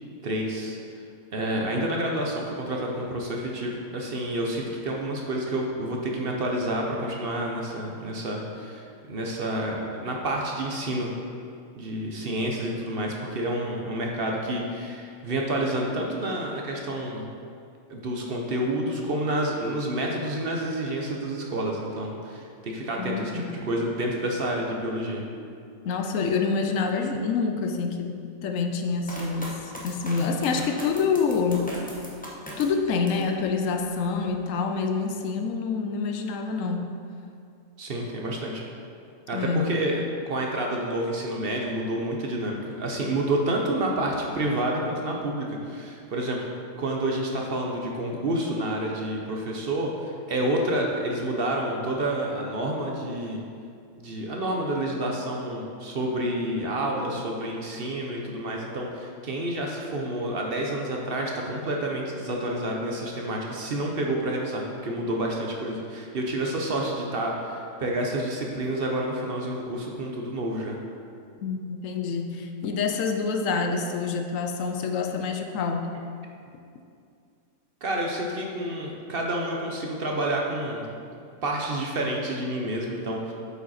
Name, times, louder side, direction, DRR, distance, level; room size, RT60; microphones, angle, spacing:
voice 1, 0.2-0.8 1.3-11.1 11.8-17.3 17.9-25.2 37.8-38.6 39.3-53.4 53.9-70.8 77.8-80.9 81.4-83.3, right 1 dB, 50° right, 0 dB, 0.9 m, -29 dB
voice 2, 23.0-23.5 25.8-31.7 32.6-36.8 39.3-39.7 71.4-76.0, left 5 dB, 75° left, 4 dB, 1.0 m, -27 dB
sound 1, 29.0-33.3 33.8-34.4, equal, 5° left, 0.8 m, -40 dB
7.9 x 5.2 x 4.2 m, 2.4 s
omnidirectional pair, 1.4 m